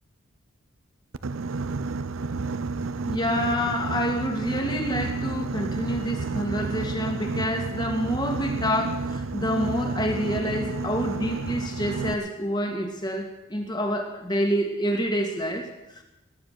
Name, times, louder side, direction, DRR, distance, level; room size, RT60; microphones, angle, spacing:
Boat Water vehicle, 1.1-12.1, right 3 dB, 85° right, 0.7 m, -30 dB
voice 1, 3.1-16.0, equal, 20° left, 3 dB, 2.1 m, -28 dB
19.5 x 9.8 x 6.8 m, 0.99 s
head